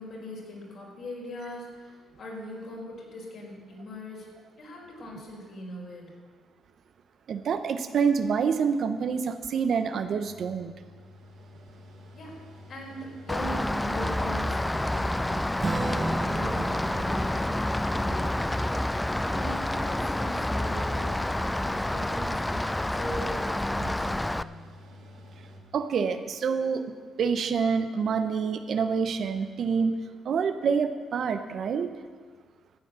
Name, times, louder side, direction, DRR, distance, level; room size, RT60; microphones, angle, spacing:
voice 1, 0.0-4.3 4.6-6.1 12.1-12.4 12.7-18.9 19.2-24.6, left 1 dB, 60° left, -2 dB, 4.8 m, -40 dB
voice 2, 7.3-10.7 25.7-26.9 27.2-29.9 30.2-31.9, right 6 dB, 60° right, 9 dB, 0.9 m, -27 dB
Mechanical fan, 10.2-25.6, left 1 dB, 85° right, 3.6 m, -49 dB
Rain, 13.3-24.4, left 1 dB, 10° left, 0.4 m, -28 dB
Acoustic guitar / Strum, 15.6-20.4, right 2 dB, 25° right, 1.1 m, -36 dB
13.5 x 8.4 x 7.0 m, 1.5 s
cardioid pair, 90°, 0 cm